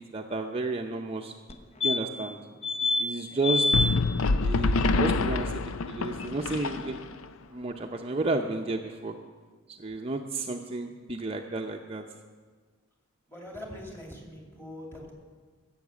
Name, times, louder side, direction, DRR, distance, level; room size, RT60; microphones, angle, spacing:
voice 1, 0.0-1.3 1.8-2.4 3.0-3.9 4.4-7.0 7.5-9.1 9.7-12.0, right 2 dB, 30° right, 2 dB, 0.7 m, -32 dB
sound 1, 1.5-1.6 1.8-2.3 2.6-3.0 3.4-3.9 6.3-6.4 6.5-6.6, left 3 dB, 30° left, 0.8 m, -26 dB
sound 2, 3.7-7.3, left 3 dB, 85° left, 0.5 m, -26 dB
voice 2, 13.3-15.1, left 1 dB, 10° left, -1 dB, 2.6 m, -43 dB
15.0 x 7.2 x 8.3 m, 1.5 s
head